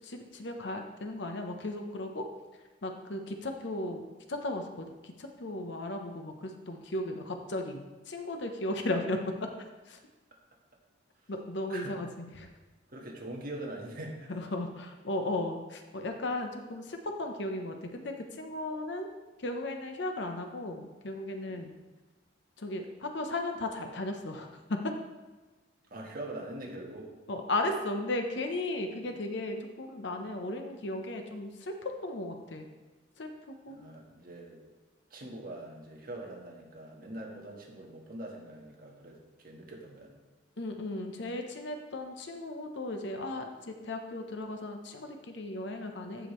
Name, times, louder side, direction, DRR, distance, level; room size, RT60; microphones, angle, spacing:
voice 1, 0.0-2.3 2.8-4.0 4.3-9.5 9.9-10.0 11.3-12.5 14.3-19.1 19.4-21.7 22.6-24.8 27.3-32.7 33.2-33.3 33.6-33.8 40.6-46.3, left 2 dB, 60° left, 4 dB, 0.8 m, -36 dB
voice 2, 12.9-14.3 21.5-21.7 25.9-27.1 33.7-34.6 35.1-40.1, right 1 dB, 45° right, -1 dB, 1.4 m, -43 dB
14.0 x 5.0 x 3.1 m, 1.2 s
head